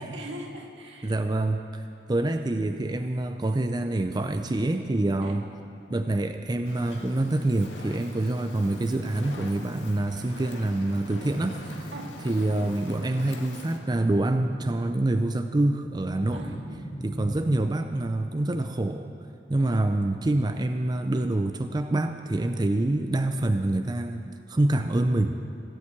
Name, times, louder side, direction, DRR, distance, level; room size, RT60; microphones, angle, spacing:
voice 1, 0.0-1.2 5.2-5.4 11.9-12.1 16.3-16.7 19.6-19.8, right 1 dB, 85° right, 1 dB, 1.9 m, -40 dB
voice 2, 1.0-1.8 2.1-5.4 5.9-11.9 12.2-16.4 17.0-19.1 19.5-25.3, right 2 dB, 25° right, 7 dB, 0.5 m, -26 dB
Fire, 6.7-13.8, left 2 dB, 90° left, 1.7 m, -44 dB
sound 1, 11.1-12.7 13.7-15.2 15.5-17.9, right 1 dB, 55° left, 3.1 m, -40 dB
17.0 x 7.3 x 8.6 m, 2.6 s
head